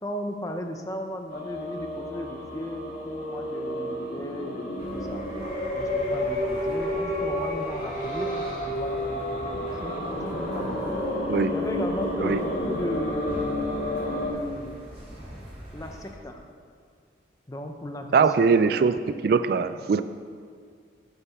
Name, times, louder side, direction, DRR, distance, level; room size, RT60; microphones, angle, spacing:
voice 1, 0.0-5.2 5.7-10.9 11.5-13.4 14.2-14.8 15.7-16.4 17.5-18.5 19.3-19.4, left 1 dB, 20° left, 4 dB, 0.8 m, -36 dB
sound 1, 1.3-14.3, left 1 dB, 45° left, 2.2 m, -30 dB
sound 2, 4.8-16.1, equal, 35° right, 2.8 m, -44 dB
voice 2, 18.1-20.0, right 5 dB, 55° right, 11 dB, 0.3 m, -21 dB
9.2 x 6.9 x 7.0 m, 2.1 s
head